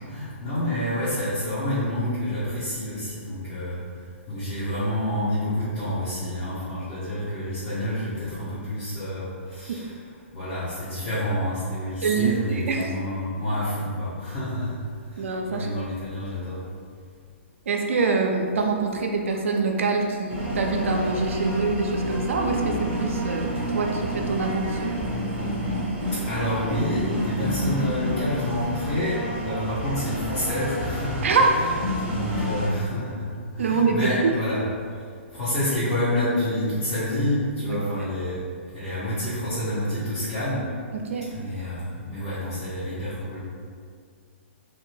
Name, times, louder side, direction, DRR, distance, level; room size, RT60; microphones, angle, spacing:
voice 1, 0.1-3.8 4.3-9.9 10.3-14.8 15.1-16.6 26.3-31.7 32.0-33.3 33.5-34.6 35.3-38.4 38.7-40.7 41.3-43.4, left 1 dB, 30° left, -12 dB, 0.9 m, -28 dB
voice 2, 12.0-12.9 15.2-15.7 17.7-23.5 23.7-24.9 31.2-31.5 33.6-34.3 37.7-37.8 41.1-41.3, right 4 dB, 75° right, 2 dB, 0.4 m, -24 dB
sound 1, 20.3-32.7, equal, 15° right, 0.7 m, -29 dB
2.6 x 2.1 x 3.1 m, 2.1 s
hypercardioid pair, 135°, 7 cm